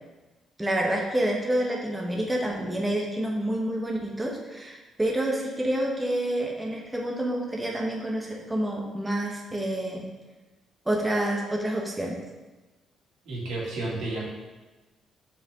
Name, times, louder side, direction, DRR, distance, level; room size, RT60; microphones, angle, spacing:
voice 1, 0.6-10.1 10.8-12.2, right 1 dB, 10° right, -1 dB, 1.1 m, -28 dB
voice 2, 13.2-14.3, right 2 dB, 80° right, -5 dB, 2.3 m, -31 dB
6.7 x 4.8 x 3.7 m, 1.2 s
cardioid pair, 90°, 0 cm